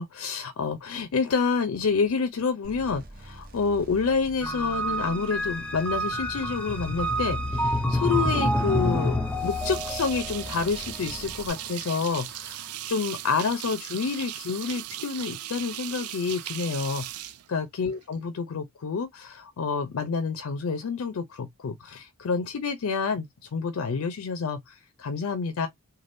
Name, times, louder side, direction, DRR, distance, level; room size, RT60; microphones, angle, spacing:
voice 1, 0.0-25.7, left 5 dB, 70° left, 0.4 m, -28 dB
sound 1, 2.6-11.5, right 1 dB, 40° right, 0.7 m, -45 dB
sound 2, 4.4-11.7, equal, 5° left, 0.4 m, -28 dB
sound 3, 9.3-18.1, right 13 dB, 85° right, 0.4 m, -38 dB
3.3 x 2.2 x 2.5 m
head